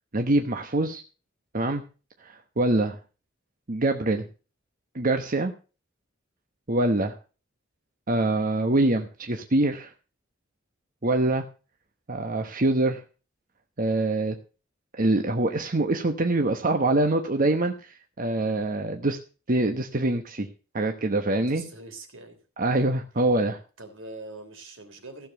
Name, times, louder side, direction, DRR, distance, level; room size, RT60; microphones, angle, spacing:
voice 1, 0.1-1.0 1.5-1.8 2.2-3.0 3.7-4.3 4.9-5.5 6.7-7.2 8.1-9.9 11.0-11.5 12.1-13.0 13.8-14.4 15.0-19.2 19.5-20.5 20.7-21.7 22.6-23.6, right 2 dB, 45° right, 5 dB, 1.1 m, -24 dB
voice 2, 21.4-22.4 23.8-25.3, right 2 dB, 80° right, 5 dB, 3.5 m, -43 dB
15.5 x 7.1 x 6.6 m, 0.35 s
head